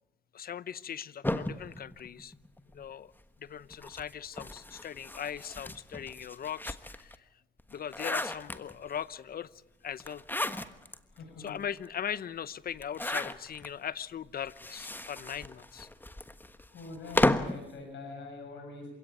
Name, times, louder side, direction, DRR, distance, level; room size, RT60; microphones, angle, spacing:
voice 1, 0.3-2.3 2.7-3.1 3.4-7.3 7.7-10.3 11.4-15.9, left 9 dB, 50° left, 0.8 m, -39 dB
sound 1, 1.2-2.8 3.7-7.1 7.6-9.0 10.0-11.0 11.5-11.6 11.8-11.9 12.8-13.7 14.4-17.6, left 1 dB, 10° left, 1.3 m, -34 dB
voice 2, 11.1-11.5 16.7-18.9, left 3 dB, 70° left, 6.6 m, -44 dB
27.5 x 17.0 x 9.2 m
cardioid pair, 90°, 20 cm